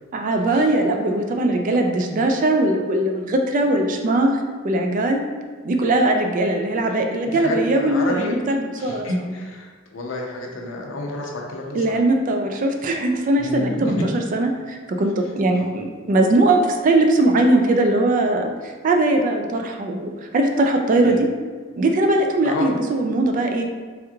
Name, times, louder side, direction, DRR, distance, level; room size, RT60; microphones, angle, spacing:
voice 1, 0.1-4.4 4.6-5.2 5.6-9.1 11.7-21.3 21.8-23.6, right 2 dB, 40° right, 4 dB, 0.3 m, -20 dB
voice 2, 7.3-8.4 8.8-12.0 13.4-13.9 15.5-15.7 21.0-21.2 22.4-22.7, left 2 dB, 70° left, 0 dB, 0.6 m, -30 dB
3.4 x 3.0 x 2.3 m, 1.5 s
head